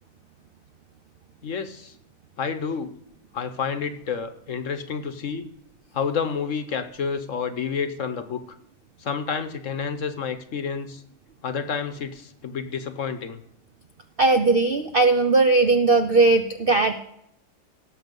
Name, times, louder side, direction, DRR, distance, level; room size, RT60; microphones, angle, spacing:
voice 1, 1.4-1.9 2.4-2.9 3.3-5.5 5.9-8.4 9.0-11.0 11.4-13.4, left 6 dB, 55° left, 10 dB, 1.1 m, -29 dB
voice 2, 14.2-17.0, right 3 dB, 60° right, 8 dB, 0.6 m, -18 dB
17.0 x 7.1 x 5.3 m, 0.75 s
omnidirectional pair, 1.8 m